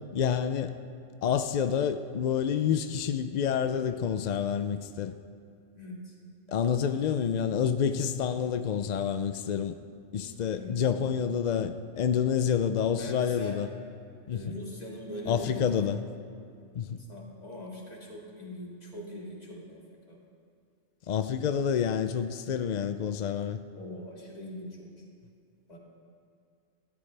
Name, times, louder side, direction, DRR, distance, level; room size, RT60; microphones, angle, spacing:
voice 1, 0.1-0.8 1.2-5.1 6.5-9.8 10.1-13.7 14.3-14.4 15.3-16.0 16.7-17.0 21.1-23.6, left 8 dB, 70° left, 9 dB, 0.4 m, -28 dB
voice 2, 5.8-6.1 10.5-11.1 13.0-13.6 14.3-15.9 17.1-19.8 20.1-20.2 23.7-25.0 25.7-25.8, left 1 dB, 30° left, -3 dB, 2.3 m, -41 dB
19.0 x 13.5 x 3.3 m, 2.3 s
omnidirectional pair, 1.3 m